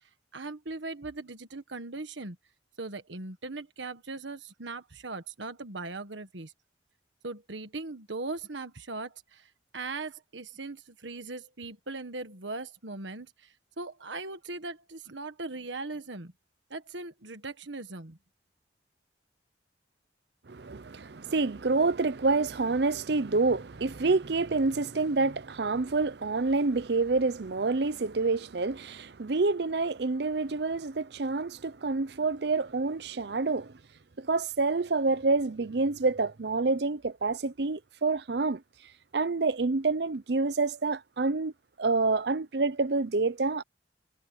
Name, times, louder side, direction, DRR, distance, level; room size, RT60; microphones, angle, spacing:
voice 1, 0.3-2.4 2.8-6.5 7.2-16.3 16.7-18.2, right 3 dB, 80° right, 1.6 m, -39 dB
voice 2, 20.5-33.7 34.2-38.6 39.1-41.5 41.8-43.6, right 3 dB, 60° right, 0.7 m, -27 dB
head